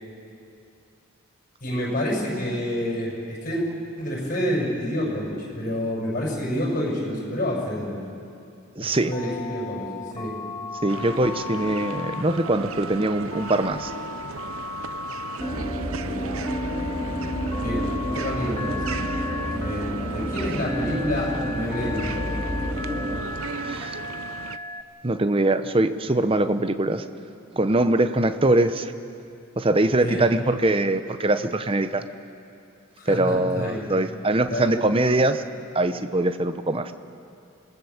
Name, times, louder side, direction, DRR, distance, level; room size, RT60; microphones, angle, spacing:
voice 1, 1.6-3.6 4.0-8.0 8.8-9.9 10.1-10.3 15.9-16.3 17.6-19.0 19.4-22.3 30.0-30.3 33.0-33.9 34.5-34.8, equal, 40° left, -3 dB, 6.3 m, -28 dB
voice 2, 8.8-9.1 10.8-13.9 23.6-24.0 25.0-27.0 27.5-28.9 29.6-32.0 33.1-35.4 35.7-36.9, right 2 dB, 25° right, 10 dB, 0.7 m, -22 dB
Telephone, 9.1-24.8, left 3 dB, 20° left, 0.8 m, -36 dB
sound 1, 10.9-24.6, right 5 dB, 75° right, 0.7 m, -37 dB
sound 2, 15.4-23.2, equal, 5° right, 3.1 m, -29 dB
26.5 x 18.5 x 7.2 m, 2.6 s
head